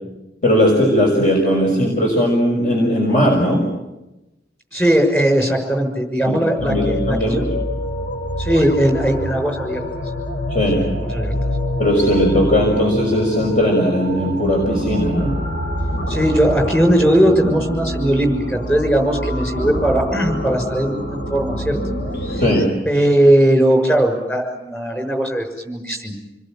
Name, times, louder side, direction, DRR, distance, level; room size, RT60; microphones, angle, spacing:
voice 1, 0.4-3.7 6.3-7.6 10.5-11.0 11.8-15.4 22.4-22.7, equal, 45° left, 0 dB, 5.9 m, -18 dB
voice 2, 4.7-7.4 8.4-9.8 10.7-11.3 16.1-21.8 22.3-22.4 22.8-26.1, right 1 dB, 10° left, 4 dB, 6.5 m, -18 dB
sound 1, 6.6-22.6, equal, 75° left, 3.8 m, -26 dB
28.5 x 21.5 x 9.0 m, 0.97 s
head